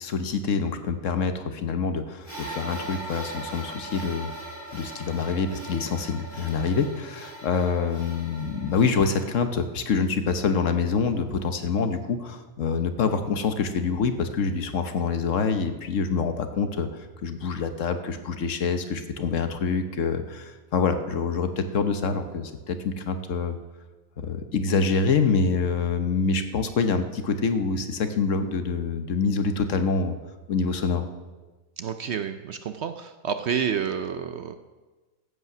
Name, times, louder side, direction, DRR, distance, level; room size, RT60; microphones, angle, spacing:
voice 1, 0.0-4.3 4.7-23.6 24.2-30.2 30.5-31.1, left 5 dB, 60° left, 8 dB, 1.2 m, -26 dB
sound 1, 2.2-9.3, right 1 dB, 35° left, 4.4 m, -40 dB
voice 2, 31.8-34.5, right 7 dB, 60° right, 9 dB, 0.8 m, -29 dB
14.5 x 8.2 x 6.0 m, 1.2 s
omnidirectional pair, 1.5 m